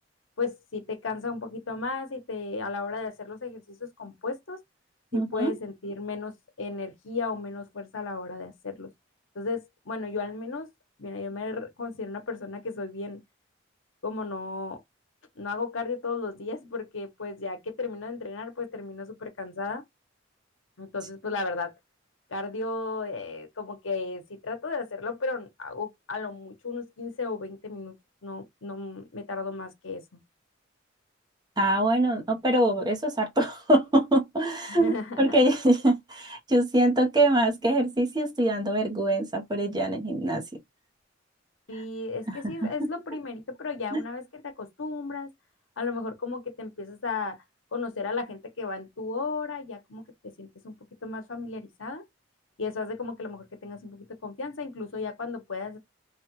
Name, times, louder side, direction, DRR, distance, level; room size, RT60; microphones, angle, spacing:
voice 1, 0.4-4.6 5.1-8.9 9.3-10.7 11.0-13.2 14.0-14.8 15.4-19.8 20.8-21.7 22.3-27.9 28.2-30.2 34.7-35.3 41.7-45.3 45.8-47.4 47.7-50.0 50.4-50.7 51.0-52.0 52.6-55.8, left 3 dB, 85° left, 1.0 m, -34 dB
voice 2, 5.1-5.5 31.6-40.4 42.3-42.7 43.9-44.0, right 1 dB, 20° right, 0.8 m, -24 dB
3.2 x 2.3 x 3.0 m
head